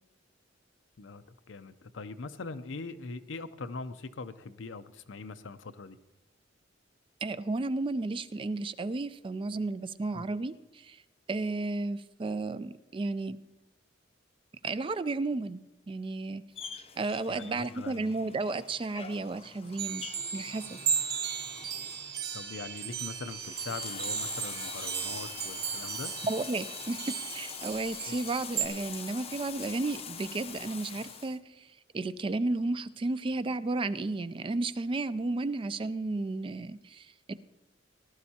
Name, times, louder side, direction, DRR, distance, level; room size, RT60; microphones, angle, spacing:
voice 1, 1.0-6.0 10.1-10.3 17.3-18.1 22.3-26.1 28.1-28.2, left 4 dB, 75° left, 11 dB, 0.6 m, -42 dB
voice 2, 7.2-11.0 11.3-13.4 14.6-16.4 17.0-20.1 20.3-20.8 26.2-27.0 27.3-31.7 31.9-37.3, right 3 dB, 25° right, 14 dB, 0.3 m, -33 dB
Bathtub (filling or washing), 16.5-31.4, left 7 dB, 30° left, 0.6 m, -44 dB
sound 1, 19.8-28.7, right 7 dB, 55° right, 1.0 m, -36 dB
18.5 x 12.0 x 2.8 m, 1.0 s
head